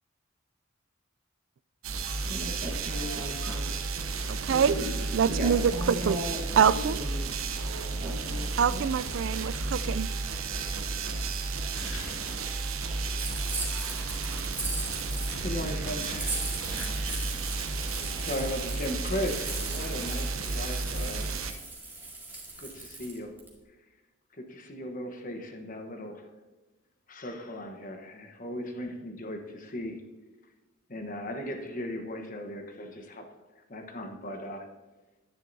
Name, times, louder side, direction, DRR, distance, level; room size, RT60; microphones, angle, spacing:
sound 1, 1.8-21.5, right 3 dB, 80° right, 0.8 m, -32 dB
voice 1, 2.3-3.7 4.5-7.3 8.0-8.9, equal, 45° right, 1.3 m, -37 dB
voice 2, 4.3-4.7 5.1-6.2 6.6-7.0 8.6-10.1, right 7 dB, 60° right, 0.3 m, -25 dB
sound 2, 11.7-12.6 12.9-13.0 13.7-17.5, left 1 dB, 60° left, 3.3 m, -45 dB
sound 3, 13.2-15.4 16.0-23.5, right 3 dB, 10° right, 1.9 m, -39 dB
voice 3, 14.8-16.6 16.9-17.1 17.4-17.5 18.2-21.4 22.6-23.4 24.3-26.3 27.1-30.0 30.9-34.7, left 1 dB, 40° left, 1.1 m, -37 dB
10.5 x 9.9 x 2.7 m
head